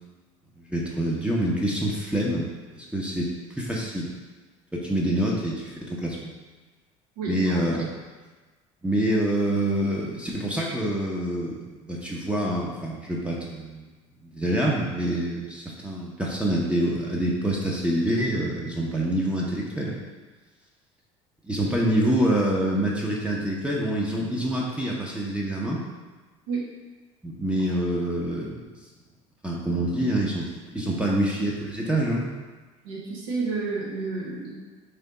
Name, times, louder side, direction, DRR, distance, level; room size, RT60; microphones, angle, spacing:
voice 1, 0.6-4.1 4.7-6.3 7.3-7.9 8.8-13.9 14.2-20.0 21.4-25.9 27.2-28.6 29.4-32.3, right 1 dB, 5° right, -3 dB, 0.7 m, -26 dB
voice 2, 7.2-7.6 26.5-26.7 32.8-34.5, right 4 dB, 70° right, -4 dB, 1.1 m, -30 dB
3.4 x 2.8 x 3.9 m, 1.3 s
hypercardioid pair, 75°, 17 cm